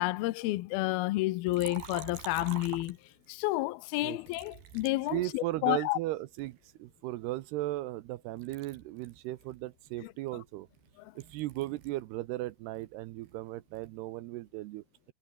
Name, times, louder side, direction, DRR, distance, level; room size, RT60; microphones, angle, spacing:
voice 1, 0.0-3.0 3.3-6.0 10.0-10.1 11.0-11.1, left 19 dB, 85° left, 2.1 m, -30 dB
Liquid, 1.5-3.4 4.3-5.8 6.4-8.1 8.4-12.1 12.4-14.0, right 9 dB, 60° right, 4.5 m, -49 dB
voice 2, 5.1-10.7 11.2-14.8, right 17 dB, 80° right, 2.4 m, -36 dB
omnidirectional pair, 5.5 m